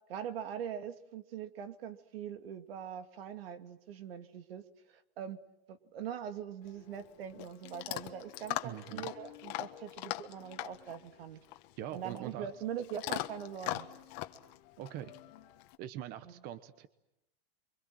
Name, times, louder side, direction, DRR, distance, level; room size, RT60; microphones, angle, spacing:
voice 1, 0.1-5.4 5.7-11.4 11.9-13.9 16.2-16.3, right 8 dB, 75° right, 8 dB, 2.7 m, -42 dB
Chewing mastication / Dog, 6.6-15.7, left 17 dB, 45° left, 1.4 m, -42 dB
voice 2, 8.6-9.1 11.8-12.5 14.8-15.2 15.8-16.9, right 11 dB, 30° right, 13 dB, 1.0 m, -43 dB
28.5 x 24.5 x 7.6 m, 0.86 s
supercardioid pair, 160°, 30 cm